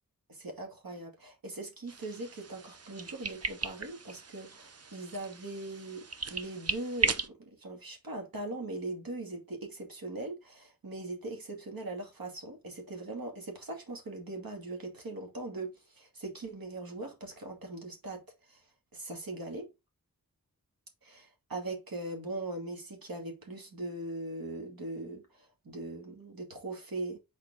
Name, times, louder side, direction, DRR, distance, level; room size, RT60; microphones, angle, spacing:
voice 1, 0.3-18.2 18.5-18.6 18.9-19.7 21.0-27.2, right 2 dB, 80° right, 2.4 m, -40 dB
sound 1, 1.9-7.3, right 4 dB, 45° right, 0.8 m, -36 dB
6.7 x 4.3 x 3.7 m
wide cardioid pair, 55°, 34 cm